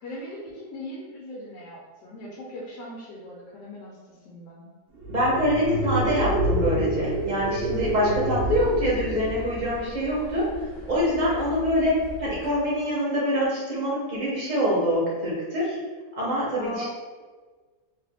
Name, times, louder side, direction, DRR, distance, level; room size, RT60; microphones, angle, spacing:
voice 1, 0.0-4.7 16.6-16.9, left 1 dB, 80° left, -5 dB, 1.3 m, -39 dB
sound 1, 5.0-9.8, right 1 dB, 75° right, 0.6 m, -28 dB
voice 2, 5.1-10.5 10.9-15.8 16.2-16.9, equal, 35° right, -6 dB, 0.9 m, -25 dB
sound 2, 7.0-12.5, left 3 dB, 10° right, 0.5 m, -42 dB
3.2 x 2.4 x 3.4 m, 1.4 s
omnidirectional pair, 1.8 m